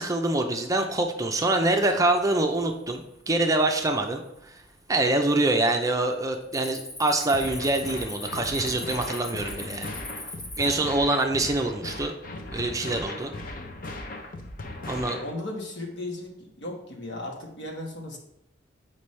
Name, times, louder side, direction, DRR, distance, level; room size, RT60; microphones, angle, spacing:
voice 1, 0.0-4.6 4.9-10.0 10.6-12.1 12.5-13.3 14.9-15.2, right 2 dB, 20° right, 4 dB, 0.5 m, -25 dB
Cricket, 1.7-2.1 2.6-3.0 3.6-3.7 4.3-4.9 5.2-5.5 5.8-10.7, left 2 dB, 30° left, 1.5 m, -40 dB
sound 1, 7.3-15.3, left 2 dB, 50° left, 0.7 m, -38 dB
voice 2, 14.7-18.2, left 1 dB, 65° left, 1 dB, 1.4 m, -37 dB
7.1 x 5.1 x 3.2 m, 0.83 s
head